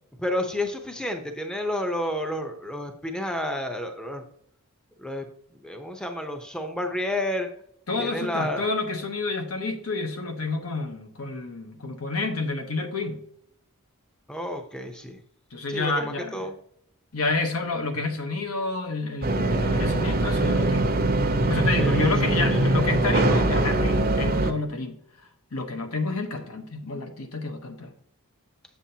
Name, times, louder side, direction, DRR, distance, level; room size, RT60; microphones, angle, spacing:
voice 1, 0.2-4.3 5.0-5.3 5.6-7.5 8.0-8.7 14.3-15.2 15.7-16.5 21.8-22.7, left 1 dB, 5° left, 0.7 m, -30 dB
voice 2, 7.9-13.2 15.5-16.4 17.1-20.9 21.5-25.0 25.5-27.9, left 3 dB, 75° left, 1.1 m, -29 dB
sound 1, 19.2-24.5, right 2 dB, 40° right, 0.8 m, -22 dB
7.6 x 7.4 x 2.8 m
head